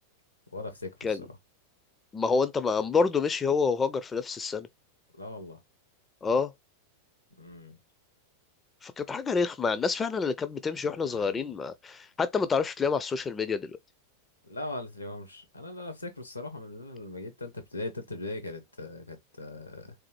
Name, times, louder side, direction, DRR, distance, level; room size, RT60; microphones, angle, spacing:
voice 1, 0.5-1.4 5.2-5.6 7.4-7.8 11.0-11.5 14.5-19.9, left 2 dB, 85° left, 1.2 m, -40 dB
voice 2, 2.1-4.7 6.2-6.5 8.8-13.7, left 5 dB, 20° left, 0.4 m, -28 dB
3.6 x 3.3 x 3.1 m
figure-of-eight pair, 90°, 0 cm